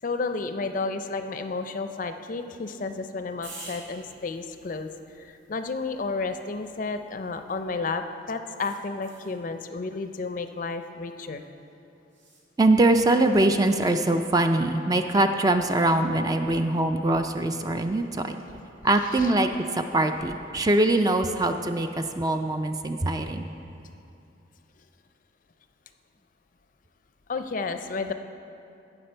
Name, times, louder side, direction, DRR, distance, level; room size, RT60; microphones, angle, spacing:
voice 1, 0.0-4.9 5.1-11.4 19.1-19.3 27.3-28.1, left 3 dB, 45° left, 8 dB, 0.4 m, -32 dB
sound 1, 3.4-7.8 8.6-9.4 12.1-12.5, right 3 dB, 70° right, 2.4 m, -49 dB
voice 2, 12.6-18.4 18.8-23.5, right 2 dB, 20° right, 7 dB, 0.3 m, -23 dB
16.0 x 5.9 x 4.4 m, 2.7 s
head